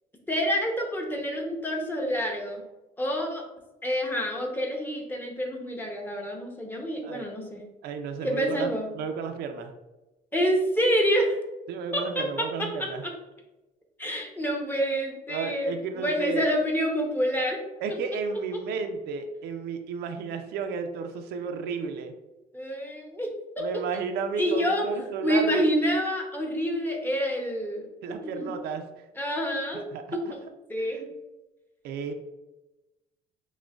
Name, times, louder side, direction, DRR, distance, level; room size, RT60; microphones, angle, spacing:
voice 1, 0.3-2.6 3.0-3.4 3.8-7.6 8.2-8.9 10.3-11.4 11.9-13.1 14.0-17.6 22.5-23.3 23.6-23.7 24.4-24.9 25.2-27.9 28.2-28.5 29.2-29.8 30.7-31.1, equal, 10° left, 1 dB, 0.8 m, -27 dB
voice 2, 7.8-8.7 8.9-9.7 11.7-13.0 15.3-16.5 17.8-22.1 23.6-25.6 28.0-29.0 29.7-30.3 30.8-31.0 31.8-32.1, right 5 dB, 75° right, 6 dB, 0.4 m, -33 dB
6.0 x 2.1 x 2.4 m, 1.0 s
cardioid pair, 110°, 17 cm